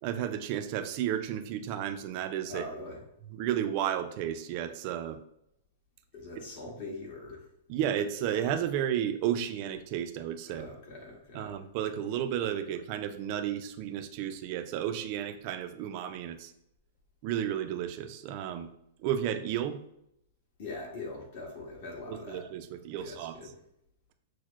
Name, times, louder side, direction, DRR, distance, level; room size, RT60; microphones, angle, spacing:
voice 1, 0.0-2.6 3.3-5.2 7.7-10.7 11.3-16.5 17.2-18.7 19.0-19.8 22.1-23.3, right 10 dB, 40° right, 8 dB, 0.3 m, -32 dB
voice 2, 2.5-3.0 6.1-7.4 10.5-11.6 20.6-22.5 23.0-23.6, left 3 dB, 50° left, -2 dB, 1.3 m, -42 dB
6.1 x 2.0 x 2.4 m, 0.77 s
hypercardioid pair, 155°, 0 cm